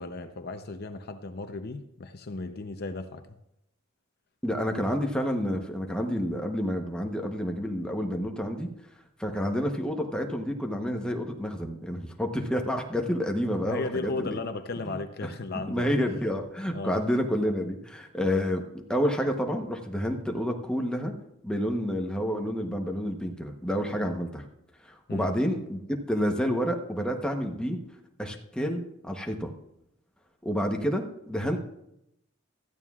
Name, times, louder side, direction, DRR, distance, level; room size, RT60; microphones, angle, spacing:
voice 1, 0.0-3.2 13.7-15.9 16.7-17.0 25.1-25.3, left 3 dB, 50° left, 0.7 m, -35 dB
voice 2, 4.4-8.7 9.2-14.4 14.9-15.3 15.7-21.1 21.4-24.4 24.8-25.8 26.1-27.8 28.2-29.5 30.4-31.6, equal, 5° left, 1.0 m, -29 dB
16.5 x 13.0 x 2.4 m
head